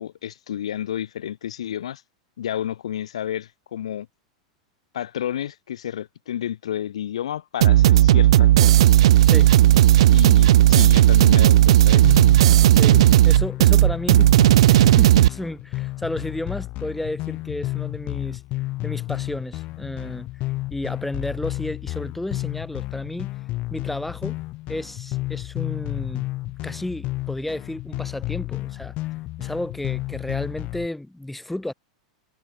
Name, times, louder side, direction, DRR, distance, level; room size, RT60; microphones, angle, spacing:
voice 1, 0.0-2.0 2.4-4.1 4.9-8.9 10.1-12.2, left 10 dB, 70° left, 1.3 m, -31 dB
sound 1, 7.6-15.3, right 13 dB, 65° right, 0.7 m, -14 dB
sound 2, 12.0-30.9, left 19 dB, 40° left, 4.6 m, -31 dB
voice 2, 12.7-14.4 14.7-18.4 18.8-20.3 20.7-23.4 23.7-24.4 24.7-26.3 26.6-28.9 29.4-31.7, left 1 dB, 5° left, 5.5 m, -32 dB
figure-of-eight pair, 90°, 3 cm